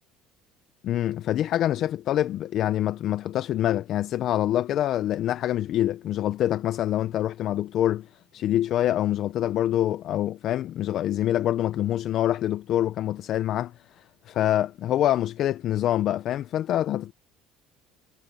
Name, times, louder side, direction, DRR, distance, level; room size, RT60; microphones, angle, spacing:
voice 1, 0.8-17.1, left 12 dB, 45° left, 0.5 m, -25 dB
cardioid pair, 155°, 0 cm